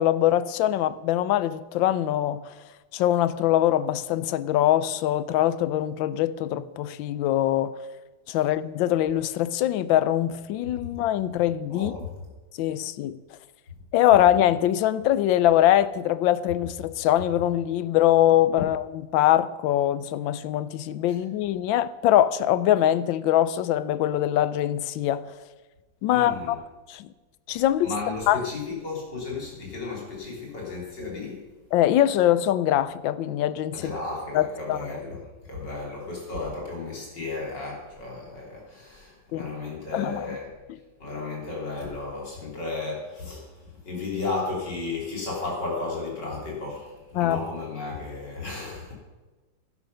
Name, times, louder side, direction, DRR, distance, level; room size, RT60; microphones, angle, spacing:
voice 1, 0.0-2.5 2.9-7.7 8.3-11.9 12.6-13.2 13.9-18.8 19.1-25.3 26.0-26.6 26.9-27.1 27.5-27.9 28.3-28.4 31.7-33.9 34.3-34.8 39.3-39.5 39.9-40.3 47.1-47.4, left 12 dB, 85° left, 1.4 m, -23 dB
voice 2, 11.7-12.1 21.1-21.2 26.1-26.6 27.8-31.4 33.7-35.2 35.5-40.5 41.0-48.9, left 3 dB, 65° left, 4.2 m, -34 dB
11.5 x 11.0 x 5.5 m
omnidirectional pair, 2.1 m